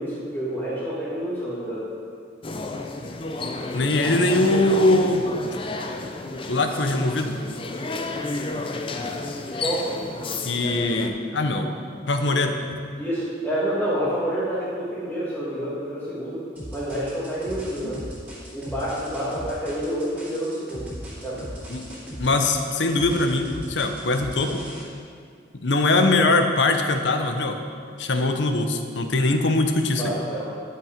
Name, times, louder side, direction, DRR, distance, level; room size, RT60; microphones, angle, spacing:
voice 1, 0.0-1.9 9.6-9.9 13.0-16.4 16.7-18.0 18.5-20.9 21.2-21.4 30.0-30.5, equal, 10° left, -11 dB, 1.6 m, -28 dB
sound 1, 2.4-11.1, left 2 dB, 30° left, 0.5 m, -31 dB
voice 2, 3.7-5.2 6.5-7.4 10.4-11.7 12.1-12.6 21.7-21.9 22.2-24.6 25.6-27.6 28.0-30.1, left 2 dB, 80° left, 5 dB, 0.8 m, -22 dB
sound 2, 16.6-24.8, equal, 10° right, 2.7 m, -38 dB
11.0 x 6.0 x 5.1 m, 2.2 s
head